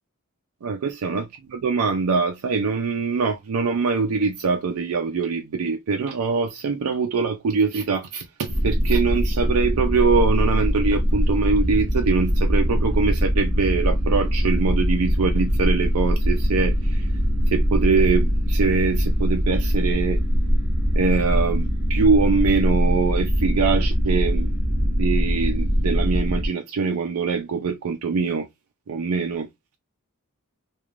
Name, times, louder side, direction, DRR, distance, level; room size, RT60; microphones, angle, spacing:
voice 1, 0.6-17.1 17.5-20.2 21.0-24.5 25.0-28.5 28.9-29.5, right 5 dB, 85° right, 0.4 m, -23 dB
sound 1, 8.5-26.5, equal, 10° right, 0.7 m, -22 dB
2.4 x 2.3 x 3.0 m
head